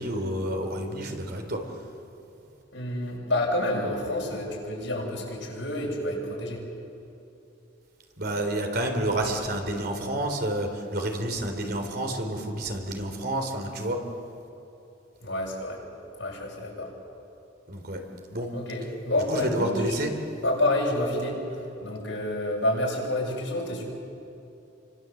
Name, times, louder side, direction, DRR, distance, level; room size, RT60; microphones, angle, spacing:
voice 1, 0.0-1.6 8.2-14.0 17.7-18.0 18.3-18.5 19.3-20.1, right 1 dB, 55° right, 4 dB, 3.7 m, -29 dB
voice 2, 2.7-6.6 15.2-15.8 16.2-16.9 18.5-20.0 20.4-21.4 21.8-23.8, left 1 dB, 85° left, -2 dB, 7.8 m, -28 dB
29.5 x 25.0 x 8.0 m, 2.8 s
head